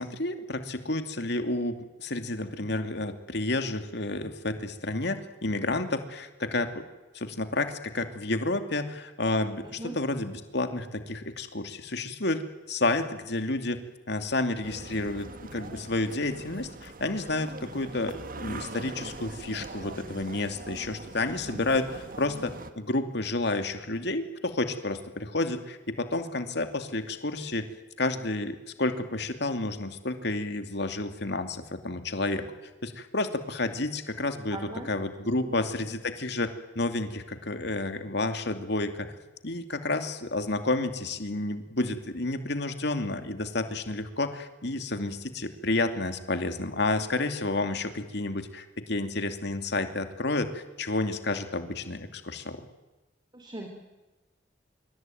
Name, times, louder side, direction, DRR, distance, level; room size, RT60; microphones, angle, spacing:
voice 1, 0.0-6.8 7.1-27.7 28.0-32.4 32.8-36.5 36.7-39.1 39.4-52.6, left 2 dB, 65° left, 7 dB, 2.7 m, -30 dB
voice 2, 9.6-10.0 34.5-34.9 35.2-35.6 53.3-53.7, right 1 dB, 25° right, 4 dB, 3.8 m, -40 dB
sound 1, 14.6-22.7, right 2 dB, 50° right, 1.8 m, -42 dB
26.0 x 24.0 x 9.3 m, 1.1 s
head